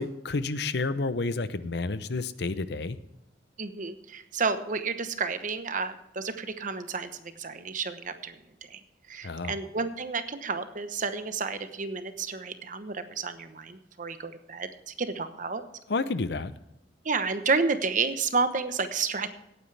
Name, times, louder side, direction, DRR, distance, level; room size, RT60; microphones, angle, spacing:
voice 1, 0.0-3.0 9.2-9.6 15.9-16.5, left 3 dB, 65° left, 14 dB, 0.7 m, -30 dB
voice 2, 3.6-8.4 8.7-8.8 9.1-15.6 17.0-19.3, right 4 dB, 45° right, 10 dB, 1.0 m, -31 dB
17.5 x 9.4 x 3.4 m, 0.84 s
head